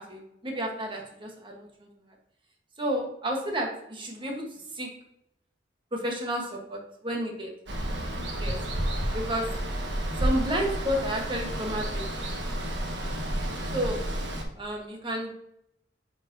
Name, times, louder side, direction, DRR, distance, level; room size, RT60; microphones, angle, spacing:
voice 1, 0.0-1.9 2.8-4.4 4.7-4.9 5.9-7.5 8.4-8.6 9.1-9.5 10.2-12.1 13.7-14.0 14.6-15.3, equal, 30° right, 1 dB, 1.3 m, -31 dB
Water, 7.7-14.4, right 1 dB, 85° right, 1.3 m, -31 dB
9.0 x 4.8 x 2.7 m, 0.78 s
head